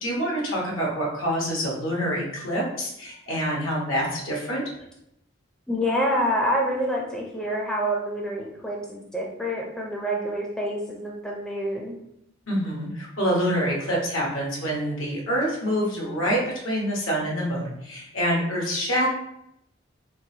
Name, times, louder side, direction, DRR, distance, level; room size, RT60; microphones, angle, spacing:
voice 1, 0.0-4.6 12.5-19.1, equal, 80° left, -2 dB, 1.1 m, -26 dB
voice 2, 5.7-11.9, equal, 5° left, -2 dB, 0.4 m, -27 dB
3.9 x 2.3 x 2.7 m, 0.80 s
head